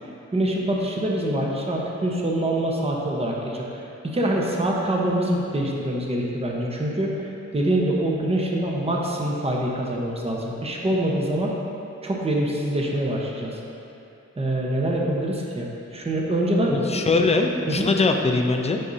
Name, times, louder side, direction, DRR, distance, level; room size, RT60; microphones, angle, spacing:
voice 1, 0.3-11.5 12.0-13.6 14.4-17.1 17.6-17.9, right 1 dB, 20° right, -2 dB, 0.9 m, -25 dB
voice 2, 16.7-18.8, left 3 dB, 20° left, 3 dB, 0.6 m, -21 dB
10.0 x 5.3 x 2.7 m, 2.7 s
cardioid pair, 95°, 29 cm